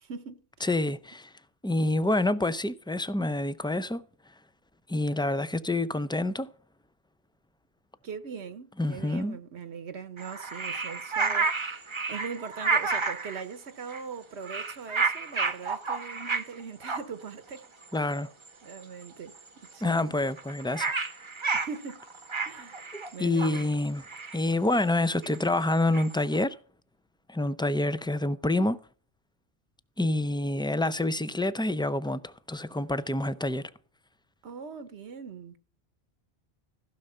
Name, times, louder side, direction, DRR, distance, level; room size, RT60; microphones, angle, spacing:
voice 1, 0.1-0.7 8.0-17.7 18.0-18.1 18.6-20.2 21.5-22.0 22.4-22.9 23.1-23.7 34.4-35.6, right 6 dB, 80° right, 1.2 m, -41 dB
voice 2, 0.6-1.3 1.6-4.0 4.9-6.5 8.8-9.4 17.9-18.3 19.8-21.0 22.9-24.0 24.3-26.6 27.3-28.8 30.0-33.7, left 2 dB, 5° left, 0.4 m, -27 dB
sound 1, 10.2-13.4 13.9-14.1 14.4-16.5 16.8-17.0 17.6-17.7 17.9-18.2 18.5-18.8 19.1-19.2 19.3-19.4 19.6-26.4, right 4 dB, 30° right, 0.9 m, -31 dB
16.0 x 6.4 x 5.6 m
omnidirectional pair, 1.1 m